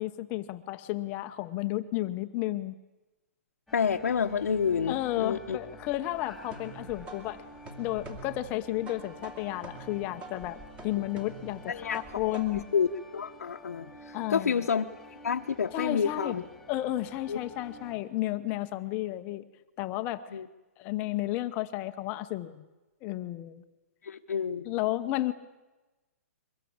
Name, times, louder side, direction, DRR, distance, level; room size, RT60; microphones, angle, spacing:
voice 1, 0.0-2.7 4.9-7.4 7.8-12.7 14.1-14.5 15.7-19.4 19.8-20.4 20.8-22.7 23.0-23.6 24.6-25.3, left 15 dB, 20° left, 10 dB, 0.9 m, -32 dB
voice 2, 3.7-5.6 11.7-12.0 12.3-12.4 12.7-12.9 13.1-14.9 15.2-16.4 17.3-17.4 20.3-20.4 24.0-24.7, left 6 dB, 90° left, 2 dB, 1.1 m, -29 dB
sound 1, 3.7-18.0, left 1 dB, ahead, 2.6 m, -50 dB
sound 2, 5.9-12.8, right 3 dB, 15° right, 2.6 m, -47 dB
23.5 x 20.5 x 8.8 m, 1.1 s
hypercardioid pair, 165°, 8 cm